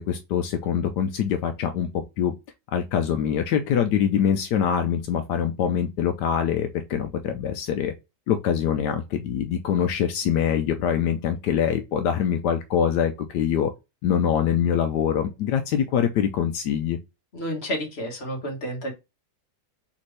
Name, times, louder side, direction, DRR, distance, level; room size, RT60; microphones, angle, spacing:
voice 1, 0.0-1.9 2.2-2.3 2.7-7.9 8.3-13.7 14.0-17.0, left 8 dB, 80° left, 1.2 m, -24 dB
voice 2, 17.3-18.9, equal, 40° left, 1.5 m, -30 dB
4.2 x 3.5 x 3.1 m
omnidirectional pair, 1.8 m